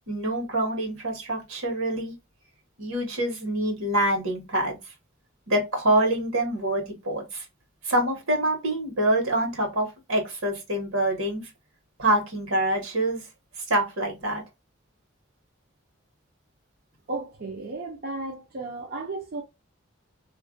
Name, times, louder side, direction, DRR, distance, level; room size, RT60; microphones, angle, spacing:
voice 1, 0.1-2.1 2.8-4.8 5.5-7.4 7.8-11.5 12.0-13.2 13.7-14.4, right 1 dB, 85° right, 1.1 m, -26 dB
voice 2, 17.1-19.4, right 3 dB, 45° right, 0.5 m, -34 dB
2.4 x 2.1 x 2.4 m
head